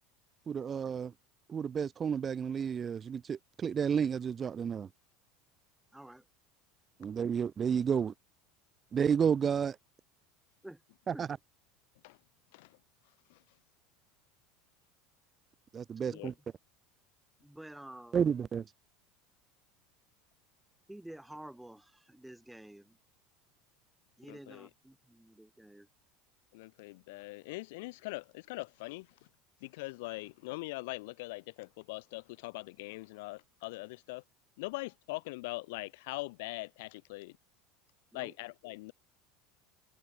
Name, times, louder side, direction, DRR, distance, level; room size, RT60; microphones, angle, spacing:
voice 1, 0.5-1.1 1.5-4.9 7.0-8.1 8.9-9.8 11.1-11.3 15.7-16.3 18.1-18.6, right 7 dB, 30° right, 0.7 m, -31 dB
voice 2, 5.9-6.2 10.6-10.8 11.1-11.2 16.1-16.2 17.4-18.2 20.9-23.0 24.2-25.9 38.1-38.3, right 1 dB, 5° right, 2.8 m, -50 dB
voice 3, 24.3-24.7 26.5-29.1 29.6-34.2 34.6-37.4 38.1-38.9, left 23 dB, 75° left, 1.0 m, -42 dB
supercardioid pair, 125°, 0 cm